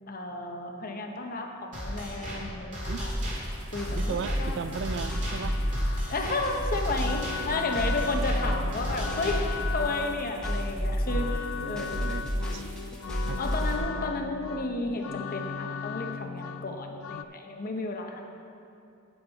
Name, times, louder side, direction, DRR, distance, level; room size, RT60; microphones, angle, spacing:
voice 1, 0.1-3.1 3.7-4.6 6.1-12.1 13.4-18.2, left 2 dB, 40° left, 3 dB, 0.9 m, -32 dB
sound 1, 1.7-9.7, equal, 35° right, 2.1 m, -36 dB
sound 2, 3.1-13.8, equal, 5° left, 1.3 m, -30 dB
voice 2, 3.9-5.6 11.6-12.6 13.3-13.4, right 5 dB, 55° right, 12 dB, 0.4 m, -36 dB
sound 3, 4.7-17.2, left 6 dB, 65° left, 0.3 m, -38 dB
8.8 x 8.7 x 4.5 m, 2.6 s
head